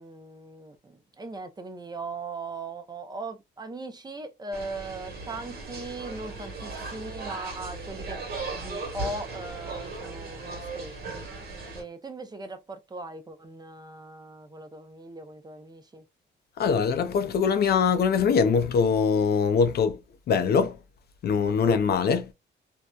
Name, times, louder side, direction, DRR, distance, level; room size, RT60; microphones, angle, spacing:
voice 1, 0.0-8.2 8.5-11.3 11.7-16.0, right 2 dB, 20° right, 0.5 m, -39 dB
sound 1, 4.5-11.8, right 3 dB, 50° right, 1.1 m, -37 dB
voice 2, 16.6-20.0 20.3-20.8 21.2-22.3, left 6 dB, 55° left, 0.4 m, -22 dB
2.6 x 2.1 x 2.2 m
cardioid pair, 90°, 20 cm